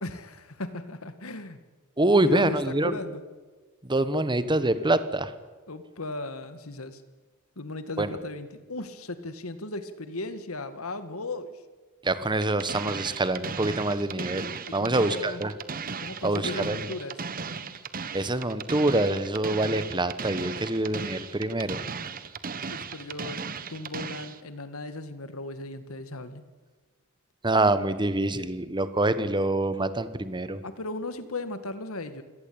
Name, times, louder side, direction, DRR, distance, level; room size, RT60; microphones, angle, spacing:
voice 1, 0.0-1.6 2.2-3.2 5.7-7.0 7.6-11.5 14.7-15.4 16.0-17.2 22.7-26.4 30.6-32.2, left 2 dB, 75° left, 11 dB, 2.0 m, -36 dB
voice 2, 2.0-3.0 3.8-5.3 8.0-8.2 12.0-15.5 16.2-16.9 18.1-21.8 27.4-30.6, right 2 dB, 20° right, 13 dB, 1.2 m, -25 dB
sound 1, 12.4-24.4, right 5 dB, 40° right, 1.3 m, -36 dB
28.0 x 18.0 x 8.8 m, 1.3 s
head